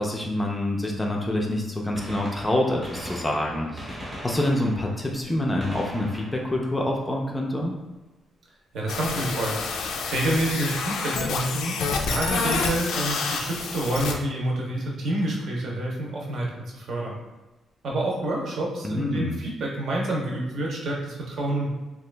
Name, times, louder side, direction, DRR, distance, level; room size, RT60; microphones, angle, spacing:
voice 1, 0.0-7.7 18.8-19.4, left 1 dB, 10° left, -1 dB, 0.4 m, -26 dB
Gunshot gunfire, 2.0-7.7 9.6-9.7 10.8-10.9 12.4-12.5 13.9-14.0 14.2-14.3, equal, 25° right, 0.8 m, -41 dB
voice 2, 8.7-9.6 10.0-17.2 17.8-21.7, right 1 dB, 60° right, -2 dB, 0.8 m, -28 dB
sound 1, 8.9-14.1, left 4 dB, 90° left, 0.4 m, -28 dB
2.9 x 2.4 x 3.2 m, 1.1 s
cardioid pair, 145°, 0 cm